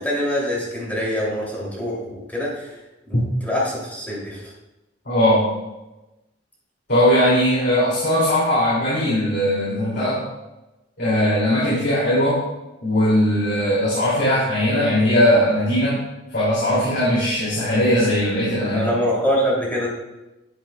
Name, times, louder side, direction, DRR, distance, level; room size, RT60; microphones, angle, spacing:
voice 1, 0.0-2.7 3.1-4.4 18.7-19.9, equal, 10° left, -5 dB, 3.0 m, -24 dB
voice 2, 5.1-5.5 6.9-10.2 11.0-12.4 12.8-16.0 16.3-18.9, equal, 60° left, -8 dB, 2.8 m, -19 dB
10.5 x 9.6 x 2.4 m, 1.0 s
head